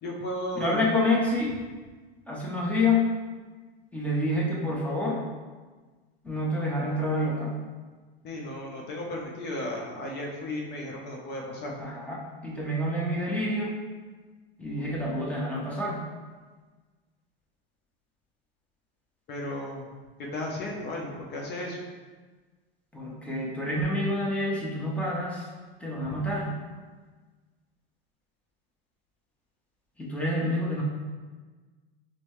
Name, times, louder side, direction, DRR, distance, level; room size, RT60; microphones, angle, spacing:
voice 1, 0.0-0.8 8.2-11.7 19.3-19.9 20.2-21.9 26.0-26.2, left 1 dB, 35° left, -1 dB, 0.8 m, -34 dB
voice 2, 0.5-1.5 2.3-3.1 3.9-5.2 6.2-7.6 11.8-13.7 14.6-16.0 22.9-25.5 25.8-26.5 30.0-30.8, left 1 dB, 5° left, -4 dB, 0.8 m, -28 dB
5.2 x 2.1 x 3.1 m, 1.4 s
supercardioid pair, 120°, 31 cm